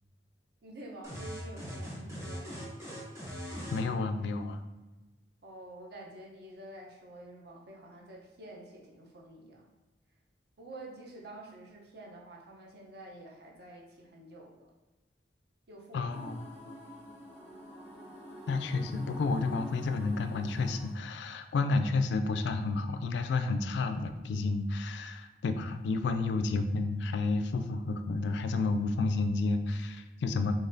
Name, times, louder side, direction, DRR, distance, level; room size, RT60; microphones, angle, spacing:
voice 1, 0.6-2.6 5.4-9.7 10.6-14.7 15.7-16.1, right 1 dB, 65° right, -1 dB, 0.7 m, -49 dB
sound 1, 1.0-3.9, equal, 15° right, 0.8 m, -40 dB
voice 2, 3.7-4.6 15.9-16.4 18.5-30.6, left 3 dB, 70° left, 8 dB, 0.3 m, -31 dB
sound 2, 16.1-20.9, equal, 40° right, 1.4 m, -47 dB
4.0 x 3.1 x 2.6 m, 1.1 s
head